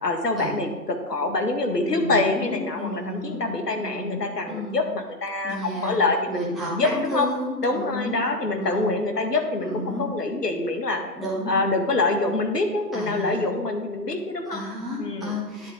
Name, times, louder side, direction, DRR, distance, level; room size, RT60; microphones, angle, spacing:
voice 1, 0.0-6.4 6.7-7.3 7.6-11.0 11.5-14.6 15.0-15.3, left 2 dB, 75° left, 4 dB, 1.8 m, -25 dB
voice 2, 1.9-3.4 3.8-4.2 4.5-4.8 5.4-6.0 6.3-8.2 8.6-8.9 9.5-10.0 11.2-11.5 12.9-13.5 14.5-15.7, left 1 dB, ahead, -7 dB, 0.5 m, -31 dB
9.6 x 7.7 x 3.8 m, 1.2 s
figure-of-eight pair, 150°, 49 cm